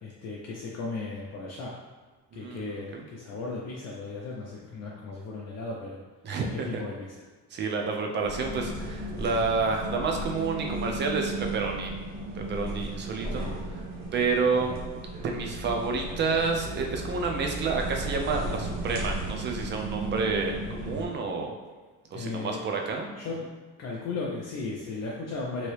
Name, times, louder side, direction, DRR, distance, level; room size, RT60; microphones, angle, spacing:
voice 1, 0.0-1.7 2.3-6.0 6.5-7.2 13.2-13.5 14.5-14.7 22.1-22.6 23.2-23.4 23.8-25.7, left 3 dB, 45° left, -3 dB, 0.5 m, -36 dB
voice 2, 2.3-3.0 6.2-6.8 7.5-11.9 12.4-13.5 14.1-14.8 15.2-21.5 22.1-23.1, right 4 dB, 30° right, 2 dB, 0.5 m, -29 dB
sound 1, 8.2-21.1, right 2 dB, 70° right, 0.9 m, -35 dB
2.9 x 2.7 x 3.2 m, 1.4 s
cardioid pair, 120°, 36 cm